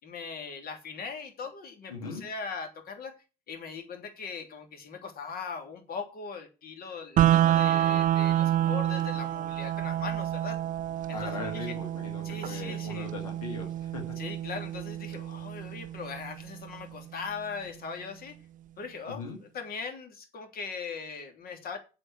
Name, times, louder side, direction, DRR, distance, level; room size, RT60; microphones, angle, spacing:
voice 1, 0.0-3.2 3.5-10.6 11.1-11.8 12.2-13.1 14.2-18.4 18.8-21.8, left 5 dB, 55° left, 3.2 m, -40 dB
voice 2, 1.9-2.2 11.1-14.2 19.1-19.4, left 3 dB, 90° left, 2.1 m, -39 dB
sound 1, 7.2-17.2, right 12 dB, 45° right, 0.5 m, -28 dB
8.0 x 7.3 x 7.9 m
hypercardioid pair, 50°, 18 cm